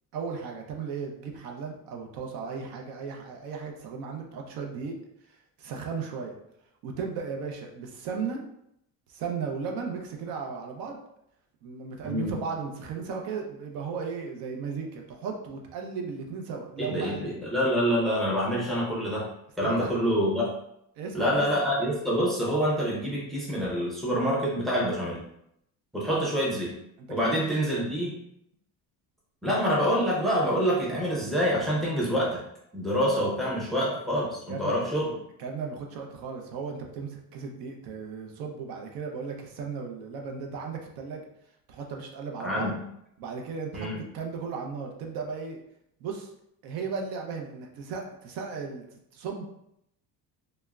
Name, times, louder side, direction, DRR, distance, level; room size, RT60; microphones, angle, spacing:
voice 1, 0.1-5.0 5.6-6.3 6.8-8.4 9.1-11.0 11.6-17.3 19.6-19.9 21.0-21.4 26.1-26.2 27.0-27.9 34.5-34.9 35.4-41.2 41.7-42.7 43.2-45.6 46.0-46.3 46.6-48.8 49.1-49.5, right 5 dB, 70° right, 2 dB, 0.6 m, -36 dB
voice 2, 12.0-12.4 16.8-19.2 19.6-20.5 21.1-25.2 25.9-26.7 27.1-28.1 29.4-32.4 32.7-35.1 42.4-42.8 43.7-44.1, equal, ahead, -5 dB, 0.5 m, -26 dB
3.3 x 2.1 x 2.3 m, 0.77 s
cardioid pair, 145°, 38 cm